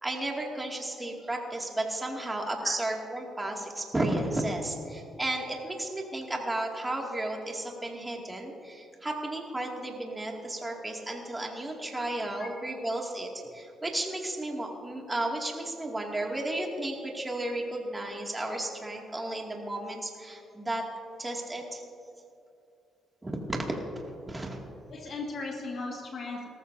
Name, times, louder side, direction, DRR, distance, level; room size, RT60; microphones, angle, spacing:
voice 1, 0.0-20.9 21.2-21.8 23.2-23.6 24.1-24.6, right 1 dB, 15° right, 0 dB, 2.3 m, -33 dB
voice 2, 16.1-16.5 24.9-26.5, left 3 dB, 50° left, 0 dB, 1.9 m, -38 dB
18.5 x 14.0 x 2.7 m, 2.7 s
cardioid pair, 90°, 0 cm